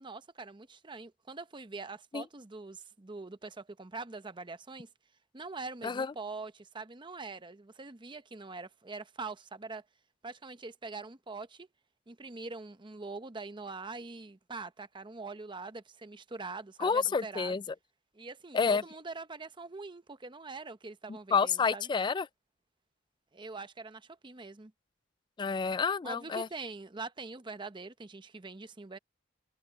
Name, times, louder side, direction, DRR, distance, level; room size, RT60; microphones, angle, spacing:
voice 1, 0.0-4.9 5.3-9.8 10.2-11.7 12.1-17.5 18.1-21.9 23.3-24.7 26.0-29.0, right 3 dB, 25° right, 0.8 m, -43 dB
voice 2, 16.8-17.6 18.5-18.8 21.3-22.3 25.4-26.5, left 5 dB, 25° left, 0.3 m, -29 dB
head